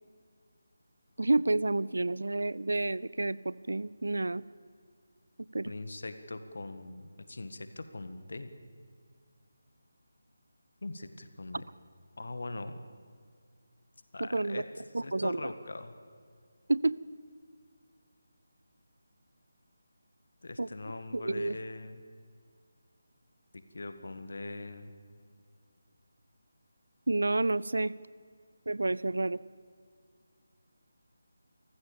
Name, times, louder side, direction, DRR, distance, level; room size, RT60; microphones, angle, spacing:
voice 1, 1.2-4.4 5.5-5.7 11.5-11.6 14.2-14.6 14.9-15.5 16.7-16.9 20.6-20.7 21.1-21.6 27.1-27.9 28.7-29.4, right 2 dB, 65° right, 20 dB, 0.6 m, -29 dB
voice 2, 5.6-8.5 10.8-11.6 12.2-12.7 14.1-16.0 20.4-22.0 23.7-24.9, left 2 dB, 55° left, 9 dB, 1.7 m, -41 dB
28.0 x 15.0 x 7.2 m, 2.1 s
figure-of-eight pair, 155°, 0 cm